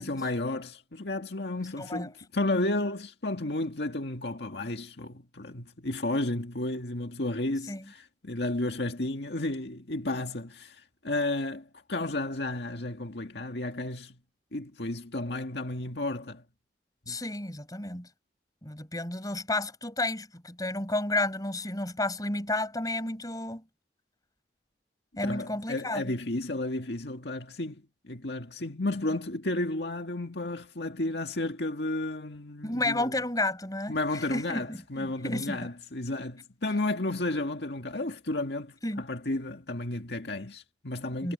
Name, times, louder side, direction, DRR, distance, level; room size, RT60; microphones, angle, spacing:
voice 1, 0.0-14.2 14.5-16.4 17.1-17.2 25.2-33.1 33.9-41.3, left 2 dB, 70° left, 1.9 m, -32 dB
voice 2, 1.8-2.1 7.7-7.9 17.1-18.1 18.6-23.6 25.2-26.1 32.6-35.7 38.8-39.0 41.0-41.3, left 2 dB, 20° left, 6.1 m, -32 dB
head